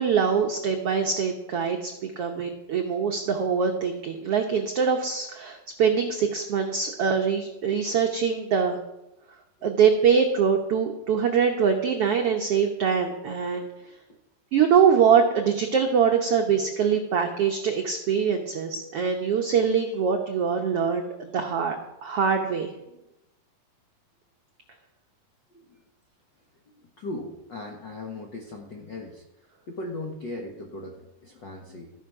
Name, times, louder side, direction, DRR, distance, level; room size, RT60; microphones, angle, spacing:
voice 1, 0.0-1.9 2.2-8.8 9.6-13.7 14.5-22.7, right 6 dB, 75° right, 3 dB, 1.3 m, -23 dB
voice 2, 27.0-29.2 29.7-31.9, left 2 dB, 65° left, 1 dB, 1.0 m, -38 dB
14.0 x 11.5 x 4.8 m, 0.95 s
omnidirectional pair, 4.0 m